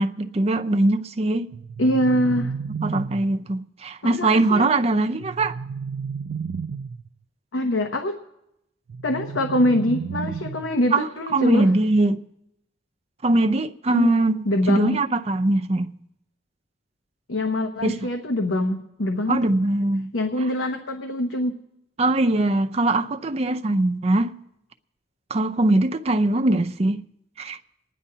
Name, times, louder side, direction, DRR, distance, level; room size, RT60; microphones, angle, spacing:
voice 1, 0.0-1.5 2.8-5.6 10.9-12.2 13.2-15.9 17.8-18.0 19.3-20.1 22.0-24.4 25.3-27.0 27.4-27.6, right 2 dB, 35° right, 0.5 m, -21 dB
sound 1, 1.5-3.5 5.2-7.1 8.9-10.9, right 5 dB, 85° right, 0.4 m, -32 dB
voice 2, 1.8-2.5 4.0-4.6 7.5-8.2 9.0-11.7 13.9-15.0 17.3-19.5 20.1-21.6, left 1 dB, 85° left, 0.9 m, -24 dB
28.0 x 10.0 x 2.8 m
head